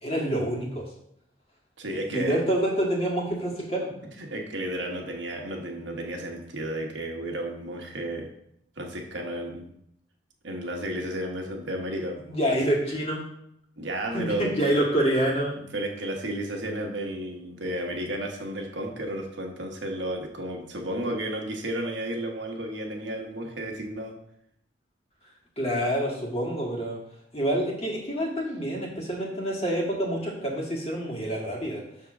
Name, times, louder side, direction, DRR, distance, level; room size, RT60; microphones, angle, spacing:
voice 1, 0.0-0.8 2.1-3.9 12.3-13.2 14.1-15.6 25.6-27.0 27.3-31.8, right 1 dB, 30° left, -3 dB, 1.8 m, -27 dB
voice 2, 1.8-2.4 4.2-8.3 8.8-9.7 10.4-12.2 12.5-12.6 13.8-14.5 15.7-24.1, right 1 dB, 80° right, 1 dB, 1.3 m, -32 dB
6.6 x 3.7 x 6.1 m, 0.74 s
head